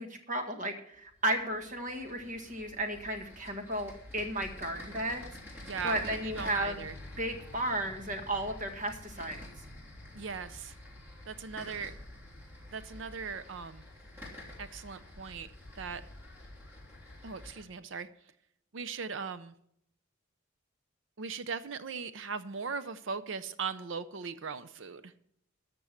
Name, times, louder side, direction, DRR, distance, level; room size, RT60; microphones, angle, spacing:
voice 1, 0.0-5.3 5.8-6.8 7.2-9.4, right 1 dB, 40° right, 4 dB, 1.8 m, -34 dB
sound 1, 1.1-17.6, left 1 dB, 10° right, 3.1 m, -48 dB
voice 2, 5.6-6.9 10.1-10.8 11.3-11.9 12.7-13.8 14.6-15.5 15.8-16.0 17.2-18.1 18.7-19.5 21.2-25.1, right 5 dB, 65° right, 14 dB, 0.6 m, -39 dB
13.5 x 6.2 x 7.2 m, 0.71 s
head